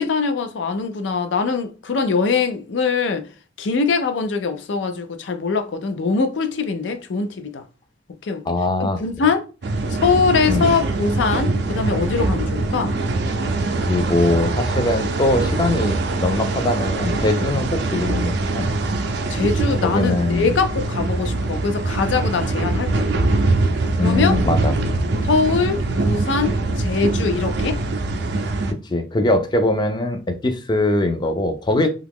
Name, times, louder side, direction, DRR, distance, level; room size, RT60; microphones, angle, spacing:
voice 1, 0.0-3.2 3.6-7.6 8.2-8.4 8.8-9.4 9.9-13.0 19.3-23.1 23.9-24.4 25.2-27.8, left 4 dB, 80° left, 0.4 m, -22 dB
voice 2, 8.5-9.3 10.5-10.7 13.8-16.0 16.2-18.7 19.8-20.5 24.0-24.7 28.9-31.9, left 2 dB, 25° left, 0.4 m, -21 dB
sound 1, 9.6-28.7, right 2 dB, 65° right, 0.4 m, -23 dB
2.8 x 2.4 x 3.4 m
head